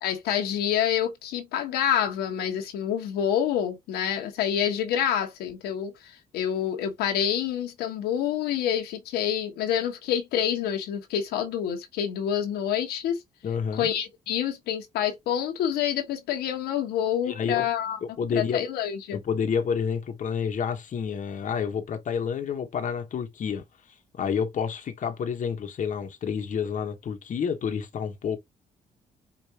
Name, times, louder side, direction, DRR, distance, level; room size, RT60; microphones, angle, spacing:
voice 1, 0.0-5.9 6.3-13.2 13.8-18.0 18.3-19.2, left 9 dB, 90° left, 1.1 m, -27 dB
voice 2, 13.4-13.9 17.3-17.7 18.0-18.6 19.1-28.4, left 6 dB, 50° left, 1.0 m, -29 dB
4.9 x 2.5 x 2.7 m
cardioid pair, 75°, 16 cm